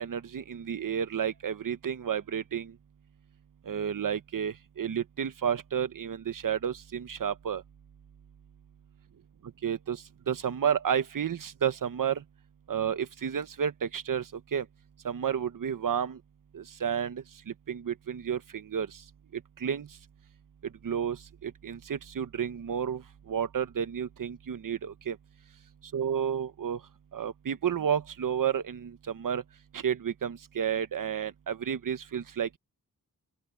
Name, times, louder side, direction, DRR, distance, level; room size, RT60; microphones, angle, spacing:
voice 1, 0.0-2.7 3.6-7.6 9.6-12.2 12.7-14.6 15.0-16.2 16.5-19.0 19.3-19.9 20.8-25.2 25.9-26.8 27.1-29.4 29.7-32.6, right 8 dB, 65° right, 1.2 m, -31 dB
open air
cardioid pair, 70°, 35 cm